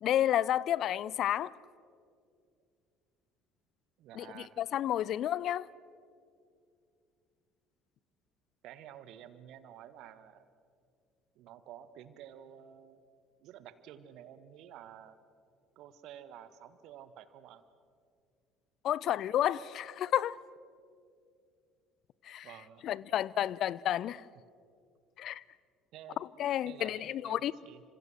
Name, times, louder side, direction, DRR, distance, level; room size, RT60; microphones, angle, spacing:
voice 1, 0.0-1.5 4.2-5.7 18.8-20.4 22.3-22.5 22.8-24.2 25.2-25.4 26.4-27.5, left 11 dB, 50° left, 0.5 m, -31 dB
voice 2, 4.0-4.6 8.6-10.4 11.3-13.0 13.4-15.1 15.7-17.6 22.4-22.9 25.9-26.2 26.6-27.8, right 10 dB, 60° right, 1.5 m, -51 dB
30.0 x 26.5 x 6.4 m
figure-of-eight pair, 55°, 0 cm